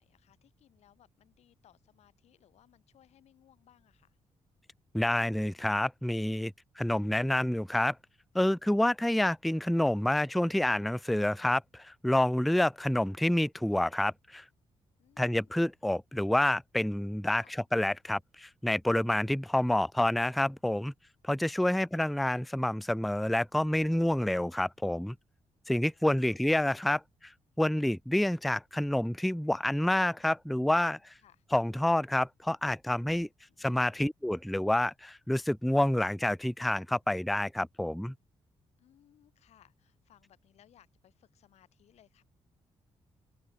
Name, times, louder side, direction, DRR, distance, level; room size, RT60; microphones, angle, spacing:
voice 1, 0.0-4.2 15.0-15.6 17.4-17.6 21.7-22.0 25.7-26.4 30.2-30.3 31.2-31.4 33.5-34.0 38.8-42.2, left 11 dB, 80° left, 6.1 m, -64 dB
voice 2, 4.9-8.0 8.3-14.4 15.2-20.9 21.2-25.2 25.7-27.3 27.6-31.1 31.5-33.3 33.6-38.1, left 1 dB, ahead, 0.3 m, -28 dB
open air
wide cardioid pair, 155°, 11 cm